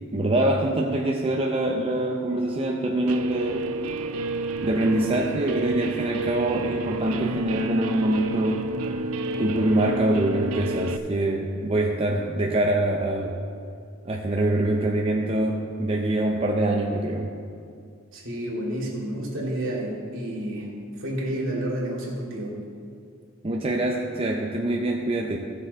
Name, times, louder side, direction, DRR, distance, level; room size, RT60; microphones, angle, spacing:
voice 1, 0.1-3.7 4.6-8.7 9.4-13.4 14.0-17.3 23.4-25.4, right 1 dB, 25° right, 0 dB, 0.6 m, -24 dB
Guitar, 3.1-11.0, right 2 dB, 80° right, 0.5 m, -30 dB
voice 2, 18.1-20.7 21.0-22.6, right 1 dB, 65° right, -3 dB, 2.4 m, -30 dB
15.0 x 6.6 x 4.0 m, 2.4 s
head